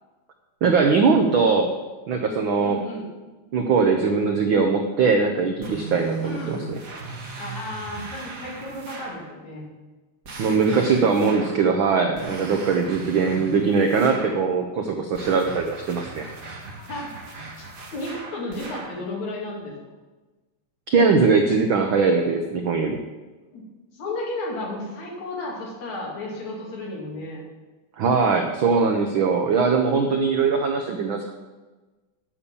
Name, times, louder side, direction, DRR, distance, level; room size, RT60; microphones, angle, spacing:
voice 1, 0.6-1.7 2.1-2.8 3.5-6.8 10.4-16.3 20.9-23.0 28.0-31.3, right 5 dB, 85° right, 4 dB, 1.1 m, -21 dB
voice 2, 2.6-3.1 6.2-6.7 7.4-9.6 13.2-13.5 16.8-17.1 17.6-19.7 23.5-23.6 23.9-27.4, left 2 dB, 70° left, -3 dB, 3.9 m, -33 dB
sound 1, 5.6-9.3 10.2-11.7 12.2-14.4 15.1-19.0, right 3 dB, 35° right, 1.7 m, -38 dB
9.7 x 6.9 x 8.5 m, 1.2 s
omnidirectional pair, 3.4 m